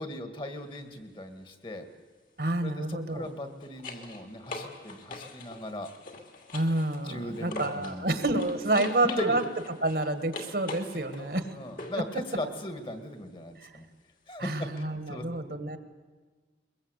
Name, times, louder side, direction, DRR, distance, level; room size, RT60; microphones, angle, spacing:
voice 1, 0.0-1.9 2.6-5.9 7.0-8.1 8.8-9.4 11.2-13.8 14.3-15.2, left 1 dB, 30° left, 8 dB, 1.9 m, -38 dB
sound 1, 0.6-0.8 3.1-8.0 8.4-12.1 14.8-14.9, left 3 dB, 50° left, 2.6 m, -43 dB
voice 2, 2.4-3.3 6.5-9.4 9.8-11.5 11.9-12.0 13.6-13.7 14.4-15.8, right 2 dB, 60° right, 10 dB, 1.8 m, -29 dB
22.5 x 22.0 x 8.2 m, 1.4 s
head